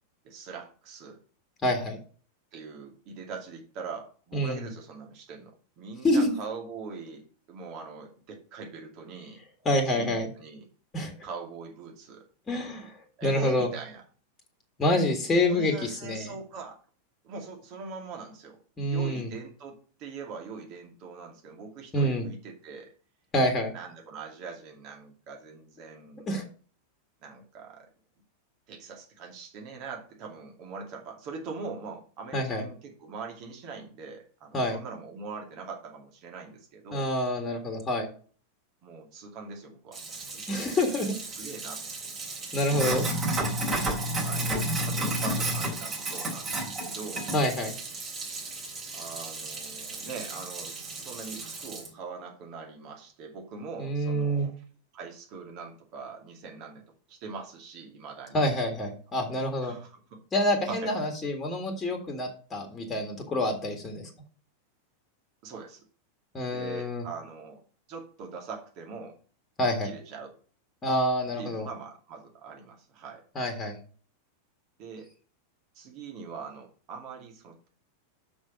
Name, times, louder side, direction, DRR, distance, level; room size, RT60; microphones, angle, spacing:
voice 1, 0.2-1.2 2.5-9.4 9.8-10.7 11.2-12.3 13.2-14.0 15.3-16.8 17.2-22.9 23.7-26.3 27.2-27.9 28.7-37.1 38.8-40.4 41.0-41.1 41.4-41.9 42.9-43.1 44.2-44.5 44.8-47.3 48.9-54.6 54.9-58.5 59.6-60.2 60.7-60.9 65.4-65.8 66.5-67.6 67.9-69.2 69.7-70.3 71.3-73.2 74.8-75.1 75.7-77.7, right 4 dB, 40° right, 2 dB, 2.5 m, -42 dB
voice 2, 1.6-2.0 4.3-4.7 6.0-6.3 9.7-10.3 10.9-11.1 12.5-13.7 14.8-16.3 18.8-19.3 21.9-22.3 23.3-23.7 26.3-26.4 32.3-32.6 34.5-34.8 36.9-38.1 40.5-41.1 42.5-43.1 47.3-47.7 53.8-54.5 58.3-59.8 60.3-64.1 66.3-67.1 69.6-69.9 70.8-71.7 73.4-73.8, left 1 dB, 20° left, 4 dB, 1.9 m, -27 dB
Sink (filling or washing), 39.9-51.9, right 1 dB, 25° right, 3.6 m, -32 dB
6.2 x 6.1 x 6.4 m, 0.41 s
figure-of-eight pair, 90°, 0 cm